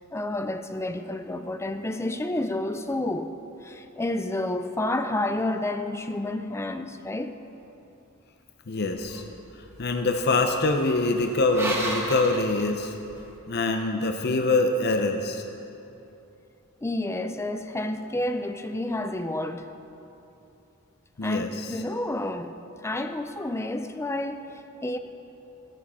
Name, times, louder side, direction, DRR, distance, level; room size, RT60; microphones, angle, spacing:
voice 1, 0.0-3.3 3.6-7.4 16.8-19.7 21.2-22.6 22.8-25.0, left 1 dB, 10° left, 0.4 m, -30 dB
voice 2, 8.7-9.2 9.8-13.0 13.5-15.4 21.2-21.5, left 2 dB, 50° left, 0.7 m, -24 dB
sound 1, 9.0-13.3, right 1 dB, 10° right, 1.3 m, -36 dB
16.0 x 11.0 x 4.3 m
head